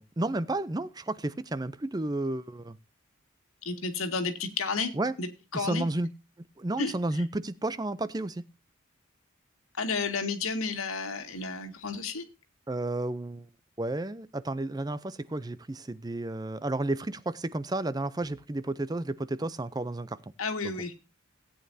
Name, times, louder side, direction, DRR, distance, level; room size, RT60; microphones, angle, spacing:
voice 1, 0.0-2.8 4.9-5.1 5.5-6.1 6.6-8.5 12.7-13.5 13.8-20.2, right 2 dB, 20° right, 0.5 m, -32 dB
voice 2, 3.6-4.9 5.2-5.8 6.8-7.2 9.8-12.2 20.4-20.9, left 4 dB, 90° left, 2.0 m, -32 dB
17.5 x 8.8 x 2.7 m
head